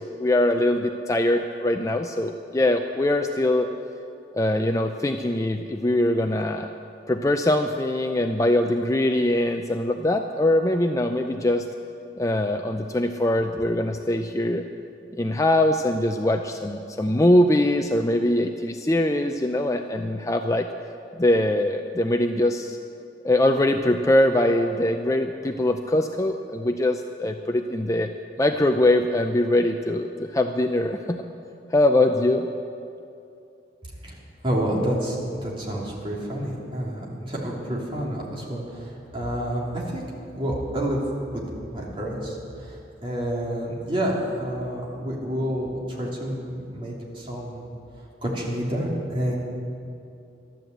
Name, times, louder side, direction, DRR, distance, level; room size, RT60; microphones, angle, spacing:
voice 1, 0.0-3.7 4.3-6.7 7.1-11.6 12.2-14.6 15.1-20.7 21.1-22.8 23.2-28.1 28.4-31.2 31.7-32.5, left 1 dB, 15° left, 5 dB, 0.4 m, -22 dB
voice 2, 34.4-35.2 35.4-40.0 40.3-41.0 41.3-41.4 41.7-47.6 48.2-49.4, equal, 30° right, -4 dB, 2.8 m, -29 dB
12.5 x 12.0 x 7.9 m, 2.6 s
head